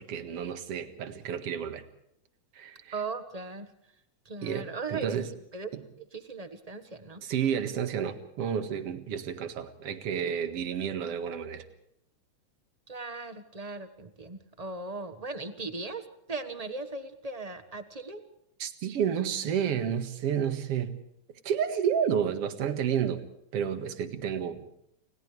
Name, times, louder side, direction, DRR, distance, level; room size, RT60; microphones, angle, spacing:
voice 1, 0.0-1.8 2.6-2.9 4.4-5.3 5.7-5.8 7.2-11.6 18.6-20.9 21.4-23.3 23.5-24.6, right 8 dB, 55° right, 2.6 m, -30 dB
voice 2, 2.9-3.7 4.2-5.2 5.5-5.7 6.0-7.2 12.9-18.2, right 3 dB, 35° right, 0.6 m, -38 dB
29.5 x 28.5 x 3.4 m
omnidirectional pair, 3.4 m